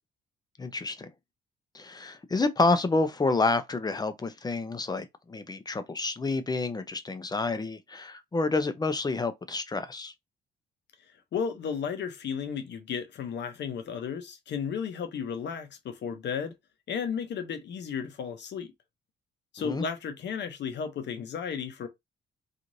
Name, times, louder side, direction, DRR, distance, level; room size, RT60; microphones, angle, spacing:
voice 1, 0.6-1.1 1.7-10.1 19.6-19.8, left 3 dB, 20° left, 0.5 m, -29 dB
voice 2, 11.3-16.5 16.9-18.7 19.5-21.9, left 7 dB, 60° left, 0.7 m, -34 dB
3.0 x 2.5 x 2.6 m
cardioid pair, 90°, 20 cm